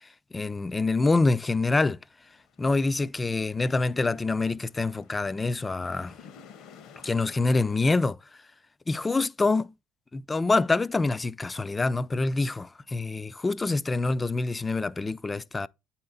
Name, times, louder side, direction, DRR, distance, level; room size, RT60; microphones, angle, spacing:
voice 1, 0.0-2.0 2.6-6.2 7.0-8.2 8.9-9.7 10.1-15.7, left 3 dB, 20° left, 0.4 m, -26 dB
sound 1, 2.2-8.0, left 7 dB, 70° left, 1.0 m, -52 dB
8.6 x 4.3 x 3.8 m
supercardioid pair, 75°, 0 cm